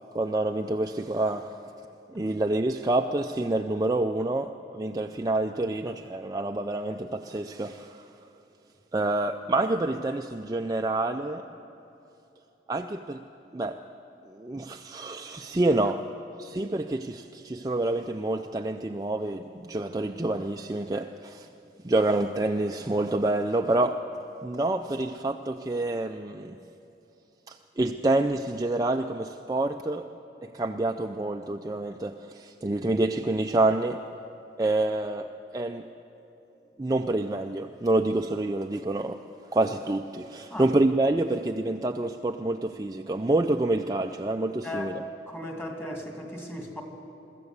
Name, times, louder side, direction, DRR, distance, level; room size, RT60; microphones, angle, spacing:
voice 1, 0.1-1.6 2.1-8.1 8.9-11.5 12.7-13.2 13.5-13.8 14.3-16.0 16.4-21.5 21.8-24.0 24.4-26.6 27.5-30.1 30.4-34.0 34.6-35.9 36.8-39.2 39.5-45.0, right 2 dB, 20° right, 4 dB, 0.4 m, -27 dB
voice 2, 44.6-45.0 45.3-46.8, left 1 dB, 10° left, 2 dB, 2.2 m, -37 dB
23.0 x 14.0 x 8.1 m, 2.9 s
head